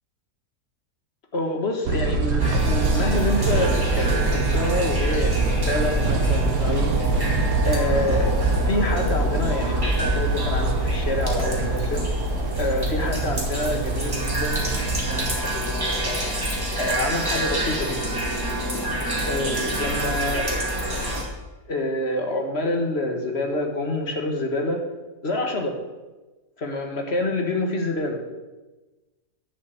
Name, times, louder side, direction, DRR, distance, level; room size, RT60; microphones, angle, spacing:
voice 1, 1.3-7.2 7.6-8.4 8.6-12.0 12.6-16.3 16.8-18.1 19.2-20.6 21.7-24.8 25.2-25.8 26.6-28.2, left 1 dB, 40° left, 3 dB, 1.7 m, -27 dB
sound 1, 1.9-15.4, right 3 dB, 85° right, 1.5 m, -25 dB
sound 2, 2.4-21.2, right 1 dB, 15° right, 2.1 m, -26 dB
11.0 x 5.6 x 8.2 m, 1.2 s
omnidirectional pair, 1.7 m